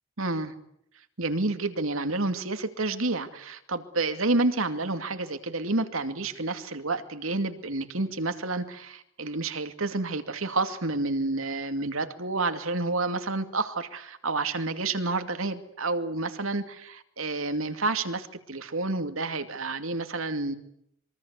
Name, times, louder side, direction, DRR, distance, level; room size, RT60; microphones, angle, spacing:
voice 1, 0.2-0.5 1.2-20.5, right 3 dB, 75° right, 8 dB, 2.5 m, -29 dB
26.5 x 23.5 x 8.3 m, 0.75 s
head